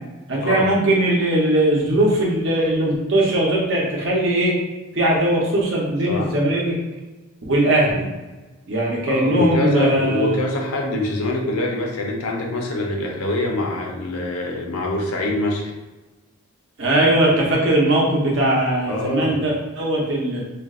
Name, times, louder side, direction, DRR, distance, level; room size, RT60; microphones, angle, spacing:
voice 1, 0.3-4.5 4.9-6.8 7.5-8.1 8.7-10.4 16.8-20.4, right 1 dB, 55° right, -3 dB, 0.7 m, -19 dB
voice 2, 9.1-15.7 18.9-19.4, left 1 dB, 90° left, 0 dB, 0.7 m, -24 dB
2.5 x 2.4 x 3.5 m, 1.2 s
head